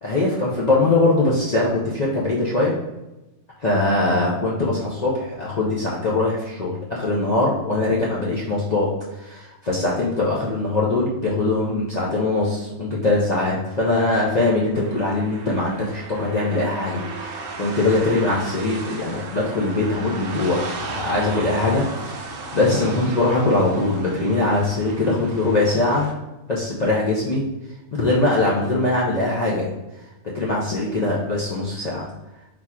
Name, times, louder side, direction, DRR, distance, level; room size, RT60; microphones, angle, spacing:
voice 1, 0.0-2.7 3.6-26.1 26.5-27.4 27.9-29.7 30.3-32.1, left 2 dB, 55° left, -5 dB, 0.4 m, -22 dB
sound 1, 14.7-26.1, right 3 dB, 60° right, 0.6 m, -35 dB
4.0 x 2.4 x 4.3 m, 0.99 s
omnidirectional pair, 1.4 m